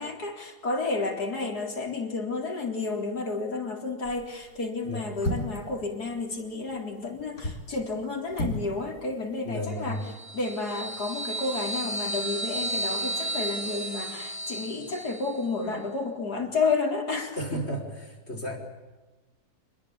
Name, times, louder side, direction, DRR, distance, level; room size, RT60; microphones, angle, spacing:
voice 1, 0.0-10.0 10.3-17.6, left 3 dB, 85° left, 1 dB, 4.5 m, -31 dB
sound 1, 4.0-4.4 5.2-5.7 7.2-7.7 8.3-8.7 9.0-9.1, left 1 dB, 60° left, 4.7 m, -31 dB
voice 2, 9.4-10.1 17.4-18.6, equal, 40° left, 3 dB, 5.7 m, -33 dB
sound 2, 10.0-15.4, right 1 dB, 20° left, 2.9 m, -33 dB
28.0 x 22.0 x 8.7 m, 1.2 s
omnidirectional pair, 1.6 m